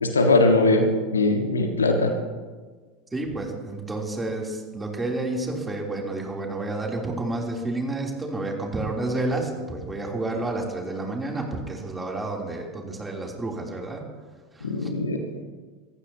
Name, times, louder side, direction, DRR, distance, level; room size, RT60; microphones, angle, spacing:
voice 1, 0.0-2.1 14.6-15.4, left 2 dB, 80° left, 5 dB, 1.6 m, -21 dB
voice 2, 3.1-14.0 14.5-14.9, right 2 dB, 15° right, 0 dB, 3.2 m, -30 dB
26.0 x 15.0 x 2.9 m, 1.4 s
figure-of-eight pair, 80°, 0 cm